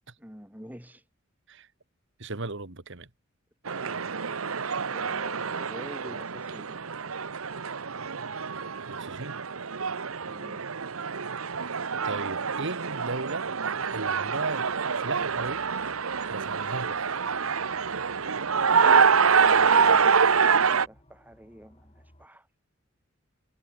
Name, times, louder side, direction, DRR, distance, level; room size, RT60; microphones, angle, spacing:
voice 1, 0.2-1.1 4.9-7.2 10.3-10.8 19.3-20.2 20.8-22.5, equal, 10° right, 6.8 m, -47 dB
voice 2, 2.2-3.1 8.9-9.4 12.0-13.5 13.9-15.7 16.3-17.2, right 3 dB, 60° right, 2.0 m, -36 dB
sound 1, 3.7-20.9, right 6 dB, 85° right, 1.0 m, -26 dB
sound 2, 14.3-22.3, left 1 dB, 30° left, 7.8 m, -59 dB
head